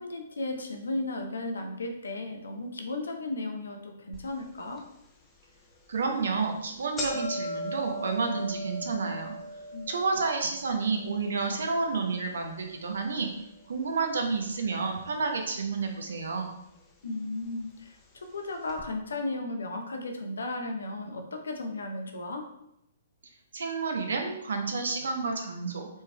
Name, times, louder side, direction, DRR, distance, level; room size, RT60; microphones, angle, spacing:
voice 1, 0.0-4.8 9.7-9.9 17.0-22.5, left 2 dB, 70° left, 4 dB, 0.6 m, -35 dB
sound 1, 4.1-4.2 4.8-4.9 5.7-5.9 6.2-6.3 6.6-14.8 15.1-15.8 16.6-16.7 17.7-17.8 18.0-18.1 18.7-18.8, left 1 dB, 15° left, 0.6 m, -40 dB
voice 2, 5.9-9.3 9.9-13.3 13.7-16.5 23.5-25.9, right 4 dB, 65° right, 3 dB, 0.7 m, -30 dB
4.3 x 3.4 x 2.2 m, 0.81 s
figure-of-eight pair, 120°, 0 cm